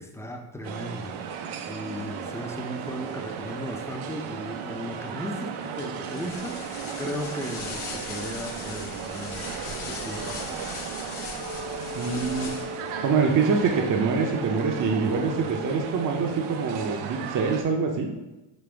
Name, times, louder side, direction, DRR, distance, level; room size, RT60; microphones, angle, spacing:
voice 1, 0.0-10.7, equal, 5° left, 3 dB, 0.4 m, -36 dB
sound 1, 0.6-17.6, right 7 dB, 85° right, 0.6 m, -36 dB
sound 2, 6.0-12.9, left 5 dB, 75° left, 0.9 m, -39 dB
sound 3, 11.4-17.0, left 2 dB, 50° left, 0.7 m, -40 dB
voice 2, 12.0-12.5 13.0-18.1, right 5 dB, 40° right, 2 dB, 0.6 m, -25 dB
5.2 x 2.9 x 3.4 m, 1.0 s
cardioid pair, 85°, 49 cm